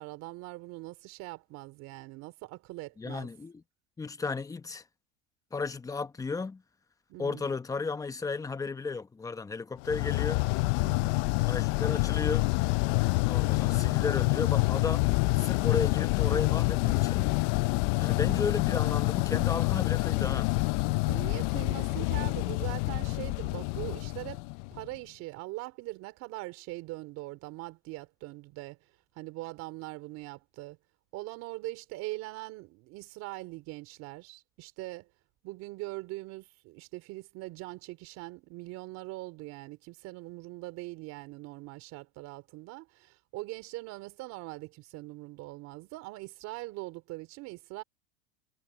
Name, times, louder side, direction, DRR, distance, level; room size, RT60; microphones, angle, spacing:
voice 1, 0.0-3.3 7.1-7.5 10.8-11.1 21.1-24.4 24.7-28.8 29.2-30.8 31.1-35.1 35.4-47.8, right 21 dB, 50° right, 4.0 m, -42 dB
voice 2, 3.0-3.6 4.0-4.8 5.5-6.6 7.2-10.4 11.5-12.5 13.3-17.3 18.0-20.5, left 4 dB, 10° left, 1.1 m, -34 dB
sound 1, 9.8-24.9, left 25 dB, 50° left, 0.5 m, -27 dB
supercardioid pair, 135°, 33 cm